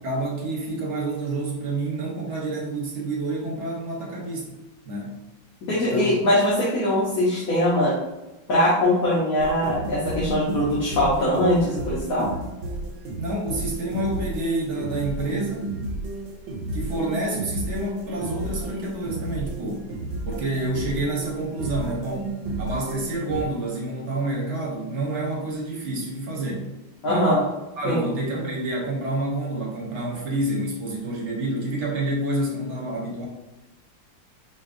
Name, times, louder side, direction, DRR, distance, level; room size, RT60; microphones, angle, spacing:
voice 1, 0.0-4.5 4.9-5.2 5.7-6.2 13.2-15.7 16.7-19.8 20.2-22.3 22.6-26.7 27.1-27.3 27.8-33.3, right 2 dB, 50° right, -2 dB, 0.9 m, -28 dB
voice 2, 5.7-8.0 8.5-12.3 27.0-27.4 27.8-28.0, left 1 dB, 60° left, -7 dB, 1.1 m, -21 dB
sound 1, 9.4-23.5, right 2 dB, 80° right, 1.3 m, -32 dB
5.2 x 2.3 x 2.5 m, 1.0 s
omnidirectional pair, 2.1 m